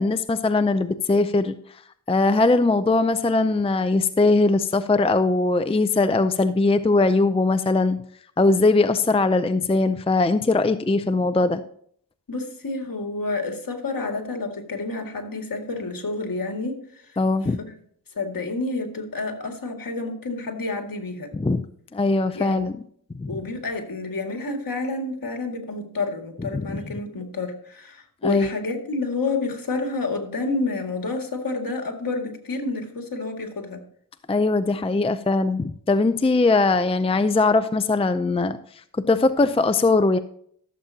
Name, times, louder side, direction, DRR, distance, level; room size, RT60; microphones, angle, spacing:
voice 1, 0.0-1.5 2.1-8.0 8.4-11.6 17.2-17.6 21.3-21.6 21.9-22.8 23.2-23.4 26.5-26.8 28.2-28.5 34.3-38.6 39.1-40.2, left 3 dB, 15° left, 11 dB, 0.5 m, -20 dB
voice 2, 12.3-16.8 17.1-17.2 17.6-17.7 18.2-21.3 22.3-22.7 23.3-33.8, left 3 dB, 60° left, 4 dB, 2.1 m, -29 dB
15.0 x 7.3 x 2.8 m, 0.62 s
cardioid pair, 60°, 39 cm